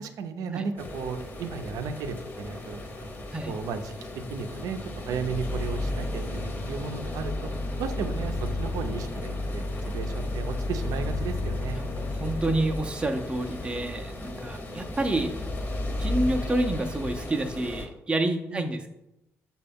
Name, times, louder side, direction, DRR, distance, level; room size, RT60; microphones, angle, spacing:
voice 1, 0.0-3.1 3.5-3.9 4.3-7.5 7.8-11.8 18.5-18.7, right 5 dB, 75° right, 8 dB, 0.5 m, -34 dB
sound 1, 0.8-17.9, left 2 dB, 30° left, 0.9 m, -36 dB
sound 2, 5.3-12.8, left 2 dB, 70° left, 0.5 m, -32 dB
voice 2, 11.7-15.3 16.0-18.9, right 2 dB, 15° right, 3 dB, 0.5 m, -28 dB
6.5 x 2.3 x 3.4 m, 0.90 s
supercardioid pair, 75°, 6 cm